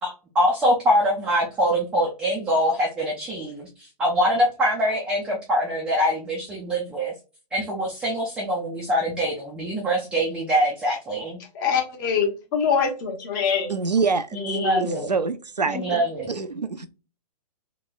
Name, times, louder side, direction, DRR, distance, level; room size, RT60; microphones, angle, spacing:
voice 1, 0.0-7.1 7.5-11.4 14.3-15.1 15.7-16.3, equal, 5° right, 0.3 m, -24 dB
voice 2, 11.4-13.7 14.3-15.1 15.7-16.0, left 6 dB, 30° left, 0.9 m, -25 dB
voice 3, 13.7-14.4 14.8-16.0 16.3-16.9, right 4 dB, 90° right, 0.4 m, -25 dB
3.1 x 2.9 x 2.2 m
figure-of-eight pair, 120°, 21 cm